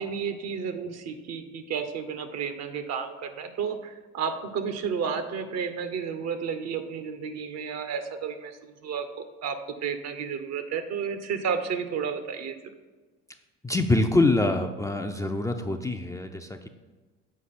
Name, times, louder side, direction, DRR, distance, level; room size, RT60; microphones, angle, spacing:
voice 1, 0.0-12.6, right 6 dB, 55° right, 9 dB, 0.9 m, -32 dB
voice 2, 13.6-16.7, left 2 dB, 10° left, 5 dB, 0.4 m, -25 dB
7.4 x 4.6 x 4.2 m, 1.3 s
supercardioid pair, 80°, 31 cm